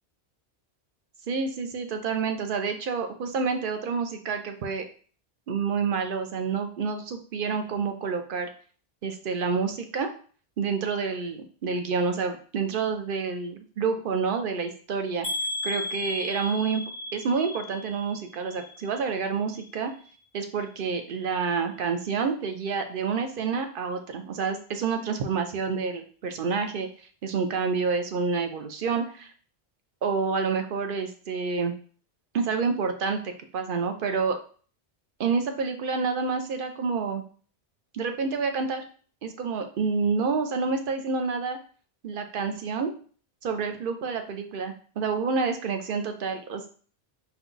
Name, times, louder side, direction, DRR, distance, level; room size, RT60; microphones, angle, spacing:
voice 1, 1.3-4.8 5.5-8.5 9.0-10.1 10.6-15.3 15.6-16.8 17.1-19.9 20.3-26.9 27.2-29.3 30.0-31.7 32.3-34.4 35.2-37.2 37.9-38.8 39.2-41.6 42.0-42.9 43.4-46.7, right 5 dB, 60° right, 6 dB, 0.8 m, -28 dB
sound 1, 15.2-19.2 19.5-20.1 20.6-20.7 21.1-21.2, left 2 dB, 35° right, 1.7 m, -35 dB
4.4 x 2.3 x 3.9 m, 0.42 s
omnidirectional pair, 1.1 m